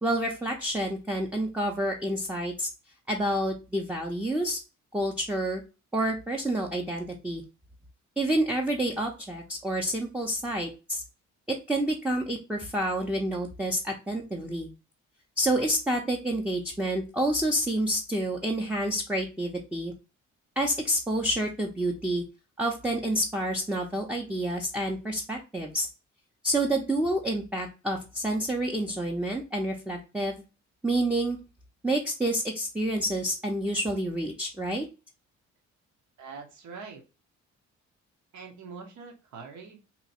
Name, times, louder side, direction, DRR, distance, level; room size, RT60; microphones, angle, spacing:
voice 1, 0.0-2.7 3.1-4.6 4.9-5.6 5.9-7.4 8.2-11.0 11.5-14.7 15.4-19.9 20.6-22.2 22.6-25.9 26.4-30.4 30.8-31.4 31.8-34.9, right 1 dB, 5° right, 0 dB, 0.6 m, -28 dB
voice 2, 36.2-37.0 38.3-39.8, right 5 dB, 70° right, 3 dB, 0.9 m, -43 dB
2.9 x 2.2 x 4.1 m, 0.30 s
cardioid pair, 90°, 30 cm